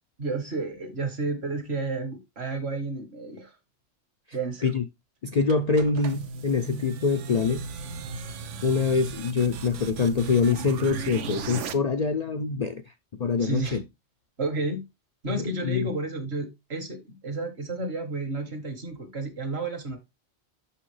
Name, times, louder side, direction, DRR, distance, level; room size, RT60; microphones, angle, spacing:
voice 1, 0.2-3.5 4.3-4.7 13.4-13.8 14.4-14.8 15.2-20.0, right 2 dB, 60° right, 1.7 m, -31 dB
voice 2, 5.2-7.7 8.6-12.8 13.2-13.8 15.3-15.9, left 5 dB, 50° left, 0.5 m, -25 dB
sound 1, 5.5-11.7, right 5 dB, 85° right, 1.0 m, -36 dB
6.2 x 5.7 x 3.2 m
omnidirectional pair, 1.2 m